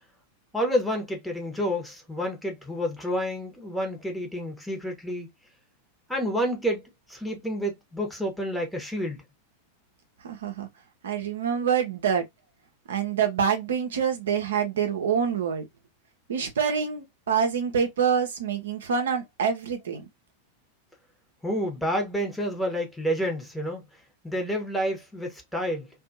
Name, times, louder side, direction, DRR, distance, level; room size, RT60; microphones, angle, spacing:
voice 1, 0.5-5.3 6.1-9.2 21.4-23.8 24.2-25.9, equal, 5° left, 0.9 m, -29 dB
voice 2, 10.3-10.7 11.0-12.2 12.9-15.6 16.3-20.1, right 7 dB, 65° right, 0.6 m, -26 dB
2.5 x 2.3 x 2.5 m
figure-of-eight pair, 90°, 0 cm